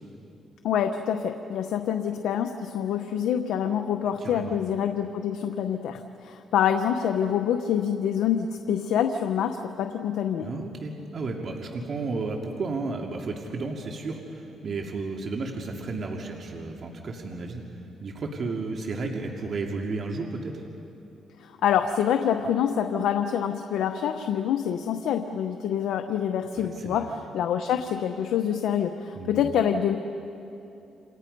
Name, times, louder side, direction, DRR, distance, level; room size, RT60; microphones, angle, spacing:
voice 1, 0.6-10.5 21.4-30.0, left 9 dB, 80° left, 6 dB, 0.9 m, -26 dB
voice 2, 4.2-4.6 10.4-17.6 18.0-20.6 26.5-27.0 29.1-29.5, right 3 dB, 50° right, 1 dB, 2.4 m, -33 dB
28.5 x 27.5 x 5.4 m, 2.8 s
cardioid pair, 90°, 0 cm